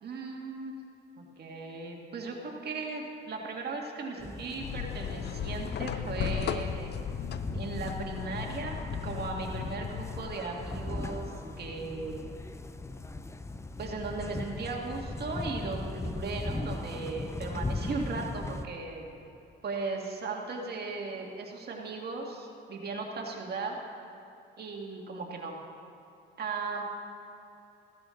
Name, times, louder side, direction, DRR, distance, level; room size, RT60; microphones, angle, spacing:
voice 1, 0.0-0.8 1.2-6.9 7.5-11.3 11.6-12.3 13.8-19.1 19.6-23.8 24.6-25.6 26.4-26.8, right 3 dB, 55° right, 0 dB, 1.9 m, -37 dB
sound 1, 4.2-18.7, left 2 dB, 15° left, 0.6 m, -39 dB
sound 2, 4.6-10.4, left 9 dB, 55° left, 0.5 m, -36 dB
15.5 x 11.5 x 3.8 m, 2.8 s
cardioid pair, 90°, 20 cm